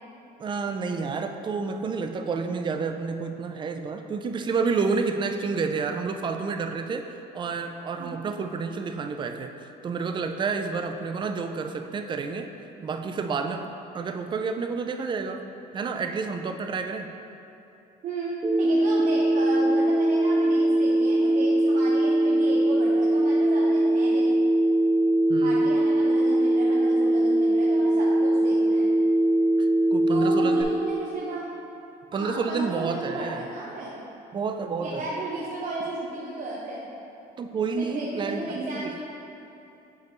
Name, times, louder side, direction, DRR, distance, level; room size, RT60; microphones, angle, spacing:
voice 1, 0.4-7.1 7.3-12.5 12.8-13.7 13.9-15.4 15.7-17.1 25.3-25.6 29.6-30.8 32.1-33.5 34.3-35.1 37.4-38.9, right 4 dB, 30° right, 6 dB, 0.4 m, -29 dB
voice 2, 18.0-24.4 25.4-28.9 30.1-31.5 32.1-34.1 34.8-36.9 37.8-39.0, right 2 dB, 50° right, -6 dB, 0.9 m, -34 dB
Telephone, 18.4-30.6, right 1 dB, 10° right, 0.9 m, -21 dB
7.8 x 5.2 x 3.1 m, 2.9 s
cardioid pair, 110°, 17 cm